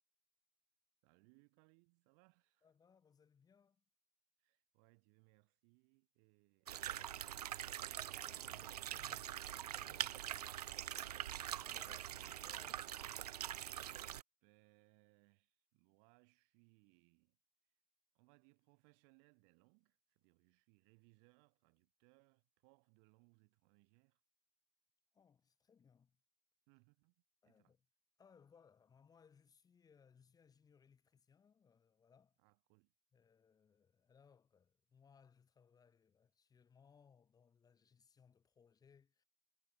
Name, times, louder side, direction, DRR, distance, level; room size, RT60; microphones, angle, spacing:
voice 1, 1.0-2.7 4.4-7.4 14.4-17.4 18.1-24.2 26.7-27.2 27.4-27.7 32.4-32.9, right 40 dB or more, 45° right, 7.2 m, -72 dB
voice 2, 2.6-3.8 7.9-10.8 11.6-12.9 25.1-26.2 27.4-27.9 28.2-32.4 33.1-39.2, left 6 dB, 20° left, 6.1 m, -68 dB
sound 1, 6.7-14.2, right 11 dB, 70° right, 0.4 m, -44 dB
figure-of-eight pair, 100°, 21 cm